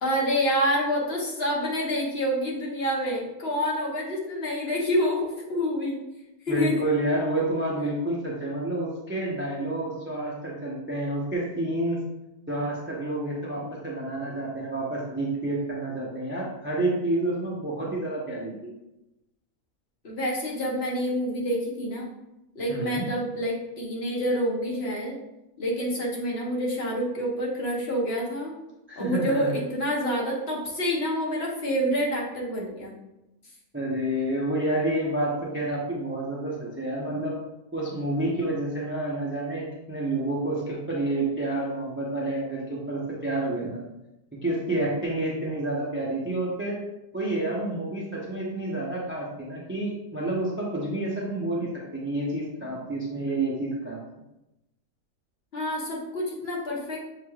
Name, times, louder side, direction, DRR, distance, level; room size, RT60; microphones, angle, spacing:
voice 1, 0.0-5.2 5.5-6.0 6.5-6.7 20.0-22.1 22.5-25.2 25.6-28.5 29.0-32.9 55.5-57.0, equal, 45° left, -4 dB, 1.1 m, -27 dB
voice 2, 6.5-12.0 12.5-18.7 22.7-23.1 28.9-29.6 33.7-37.4 37.7-43.8 44.4-46.8 47.1-54.0, right 1 dB, 20° right, -4 dB, 0.3 m, -29 dB
6.8 x 3.1 x 2.3 m, 0.93 s
omnidirectional pair, 1.6 m